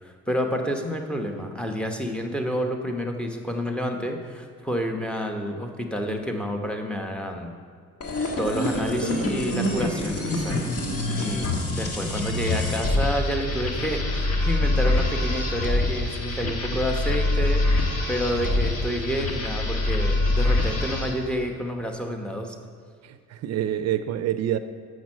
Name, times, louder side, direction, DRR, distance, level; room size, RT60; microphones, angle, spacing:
voice 1, 0.0-7.5 8.4-10.7 11.2-22.5, equal, 5° left, 3 dB, 1.0 m, -29 dB
sound 1, 8.0-21.2, left 2 dB, 50° left, 1.4 m, -25 dB
voice 2, 10.8-11.3 16.4-16.8 23.0-24.6, right 11 dB, 60° right, 11 dB, 0.5 m, -29 dB
6.2 x 6.0 x 7.3 m, 2.1 s
cardioid pair, 90°, 30 cm